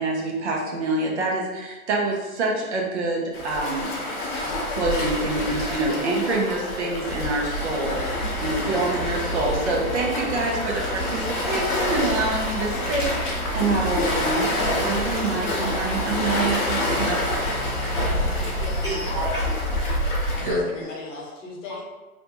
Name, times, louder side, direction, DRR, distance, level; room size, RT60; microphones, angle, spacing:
voice 1, 0.0-3.9 4.7-17.2, right 3 dB, 50° right, -1 dB, 0.7 m, -26 dB
Waves surf, 3.3-20.5, left 1 dB, 35° left, 0.7 m, -27 dB
sound 1, 7.8-18.8, right 1 dB, 80° left, 0.7 m, -33 dB
voice 2, 17.8-19.4 20.0-20.6, equal, 25° right, -10 dB, 0.4 m, -31 dB
voice 3, 18.6-19.6 20.3-21.8, left 3 dB, 55° left, -2 dB, 1.0 m, -37 dB
2.5 x 2.2 x 2.9 m, 1.2 s
figure-of-eight pair, 115°, 45 cm